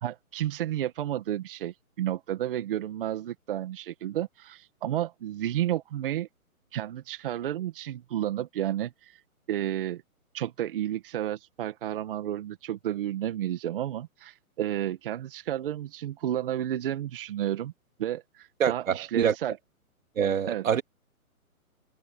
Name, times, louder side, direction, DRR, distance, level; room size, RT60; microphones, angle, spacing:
voice 1, 0.0-6.3 6.7-9.2 9.5-10.0 10.3-17.7 18.0-19.6 20.5-20.7, right 12 dB, 40° right, 1.8 m, -31 dB
voice 2, 18.6-19.3 20.2-20.8, right 8 dB, 60° right, 3.2 m, -25 dB
hypercardioid pair, 160°, 44 cm